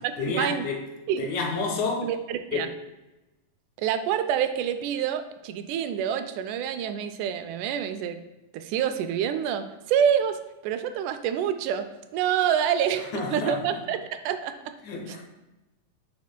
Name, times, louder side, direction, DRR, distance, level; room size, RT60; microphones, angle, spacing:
voice 1, 0.2-0.8 1.2-2.1 2.5-2.7 13.1-13.8 14.8-15.2, left 3 dB, 75° left, 1 dB, 2.5 m, -29 dB
voice 2, 2.0-2.7 3.8-8.2 8.5-10.4 10.6-11.9 12.1-14.5, right 9 dB, 90° right, 9 dB, 2.1 m, -27 dB
9.5 x 5.2 x 2.2 m, 1.1 s
omnidirectional pair, 3.5 m